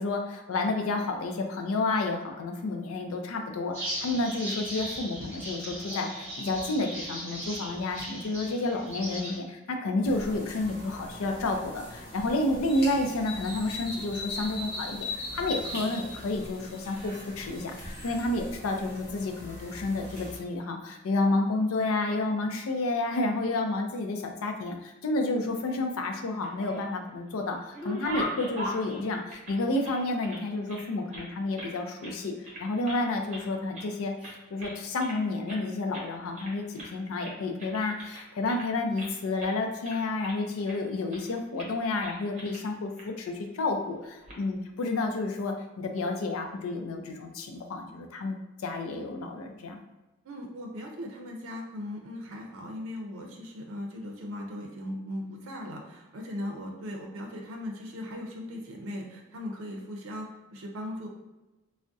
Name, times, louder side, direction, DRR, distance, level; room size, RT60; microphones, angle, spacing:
voice 1, 0.0-49.8, left 2 dB, 85° left, 4 dB, 0.4 m, -30 dB
sound 1, 3.7-9.4, equal, 10° right, 1.3 m, -38 dB
sound 2, 10.0-20.4, left 1 dB, 50° left, 1.0 m, -40 dB
sound 3, 26.3-27.1 27.5-30.4 30.7-31.7 32.0-32.2 32.4-33.0 33.3-33.9 34.2-35.2 35.5-35.7 35.9-36.1 36.3-36.9 37.2-39.1 39.4-39.6 39.8-40.8 41.1-41.3 41.6-41.7 42.0-42.6 43.0-43.1 44.0-44.4, equal, 35° right, 0.7 m, -40 dB
voice 2, 50.2-61.1, left 1 dB, 75° right, 0 dB, 0.5 m, -38 dB
3.4 x 2.1 x 2.6 m, 1.1 s
head